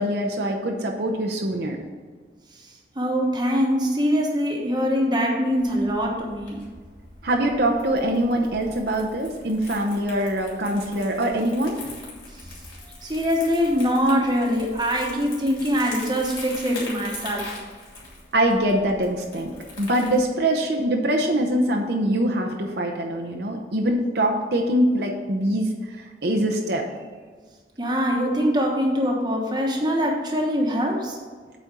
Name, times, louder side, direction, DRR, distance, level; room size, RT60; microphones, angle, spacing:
voice 1, 0.0-1.8 7.2-11.9 18.3-19.5 19.8-26.0 26.2-26.8, right 1 dB, 65° right, 1 dB, 0.8 m, -23 dB
voice 2, 2.9-6.6 13.0-17.5 27.8-31.2, equal, 25° right, 0 dB, 1.2 m, -23 dB
Crumpling crinkling, 5.6-20.2, left 2 dB, 25° left, 2.4 m, -42 dB
8.2 x 4.4 x 6.7 m, 1.5 s
head